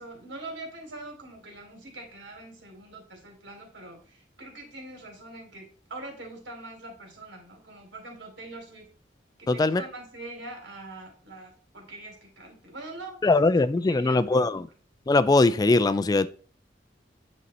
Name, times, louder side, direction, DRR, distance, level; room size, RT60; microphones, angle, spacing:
voice 1, 0.0-8.9 9.4-13.3 13.9-14.5, right 2 dB, 75° right, 3.2 m, -43 dB
voice 2, 9.5-9.9 13.2-14.7 15.1-16.3, left 3 dB, 20° left, 0.3 m, -21 dB
9.2 x 5.4 x 4.2 m
head